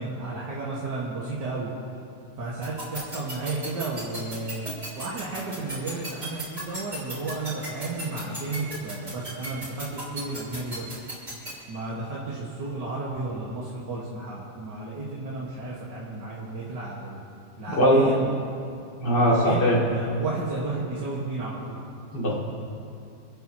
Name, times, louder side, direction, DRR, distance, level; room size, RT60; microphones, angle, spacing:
voice 1, 0.0-1.7 2.4-4.6 5.0-10.8 11.7-17.2 17.6-18.4 19.1-21.8, right 3 dB, 85° right, -7 dB, 2.4 m, -33 dB
sound 1, 2.6-11.5, right 1 dB, 25° right, 3.4 m, -35 dB
voice 2, 17.7-18.1 19.0-19.8 22.1-22.4, equal, 75° left, -4 dB, 3.2 m, -20 dB
29.0 x 10.5 x 3.0 m, 2.5 s
omnidirectional pair, 1.9 m